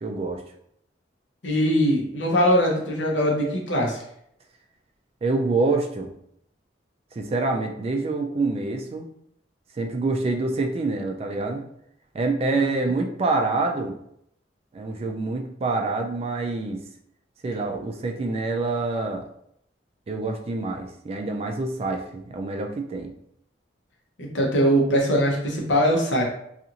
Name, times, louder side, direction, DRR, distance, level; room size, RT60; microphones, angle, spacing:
voice 1, 0.0-0.4 5.2-6.1 7.2-9.1 9.7-11.6 12.1-13.9 14.7-16.8 17.4-19.2 20.1-23.1, right 3 dB, 35° right, 3 dB, 0.3 m, -26 dB
voice 2, 1.4-4.0 12.5-12.9 24.2-26.2, equal, 80° left, -1 dB, 0.8 m, -22 dB
2.5 x 2.4 x 2.8 m, 0.72 s
head